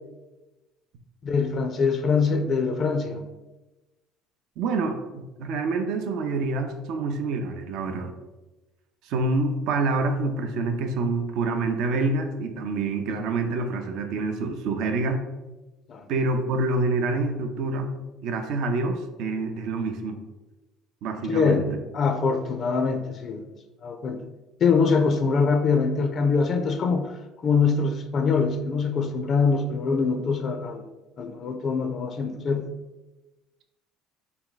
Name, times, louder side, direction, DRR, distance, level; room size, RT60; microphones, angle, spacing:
voice 1, 1.2-3.2 15.9-16.1 21.3-23.4 23.8-24.2 24.6-27.2 27.4-30.8 31.2-32.7, left 5 dB, 50° left, 7 dB, 0.4 m, -24 dB
voice 2, 4.6-8.1 9.0-15.2 16.1-20.2 21.0-21.7, right 3 dB, 65° right, 6 dB, 0.4 m, -27 dB
3.5 x 2.3 x 3.8 m, 1.1 s
hypercardioid pair, 75°, 0 cm